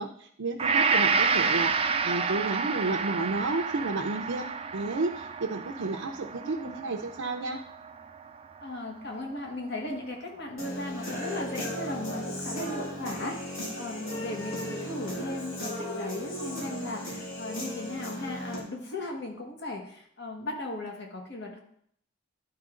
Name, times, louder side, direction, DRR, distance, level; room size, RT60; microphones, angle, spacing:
voice 1, 0.0-4.5 4.7-7.6, right 3 dB, 70° right, 2 dB, 0.6 m, -32 dB
Gong, 0.6-8.9 9.4-9.5, right 5 dB, 30° right, 0.4 m, -29 dB
voice 2, 6.4-6.8 8.6-21.6, left 2 dB, 55° left, 1 dB, 1.5 m, -37 dB
Human voice / Guitar, 10.6-18.6, equal, 80° left, 2.5 m, -36 dB
12.0 x 4.5 x 3.8 m, 0.67 s
head